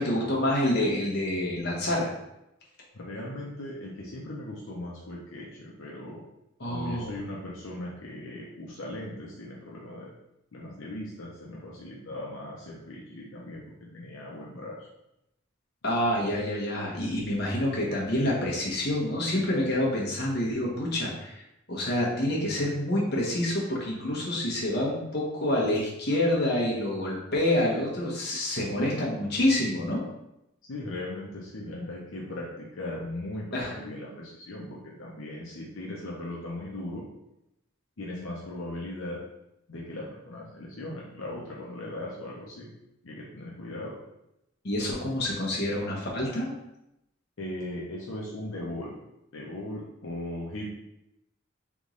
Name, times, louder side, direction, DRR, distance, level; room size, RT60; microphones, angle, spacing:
voice 1, 0.0-2.1 6.6-7.1 15.8-21.3 21.7-30.0 33.5-33.7 44.6-46.5, left 1 dB, 50° left, -4 dB, 1.1 m, -27 dB
voice 2, 2.9-6.2 6.7-10.1 10.5-14.9 30.6-37.0 38.0-39.2 39.7-42.7 43.0-44.0 47.4-48.9 49.3-50.7, left 1 dB, 75° left, -4 dB, 0.7 m, -38 dB
3.5 x 3.0 x 3.7 m, 0.86 s
head